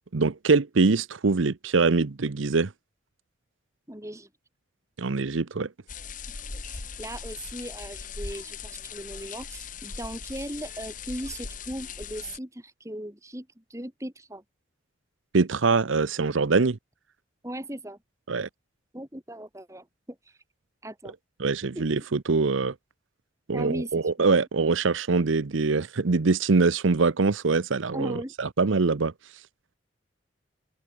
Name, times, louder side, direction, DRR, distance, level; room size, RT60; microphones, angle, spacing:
voice 1, 0.1-2.7 5.0-5.7 15.3-16.8 18.3-18.5 21.4-22.7 23.5-29.1, right 4 dB, 85° right, 0.8 m, -23 dB
voice 2, 3.9-4.3 6.7-14.4 17.4-18.0 18.9-20.2 20.8-21.1 21.7-22.1 23.5-24.3 27.9-28.3, right 1 dB, 15° right, 2.6 m, -38 dB
sound 1, 5.9-12.4, left 5 dB, 40° left, 1.7 m, -39 dB
open air
head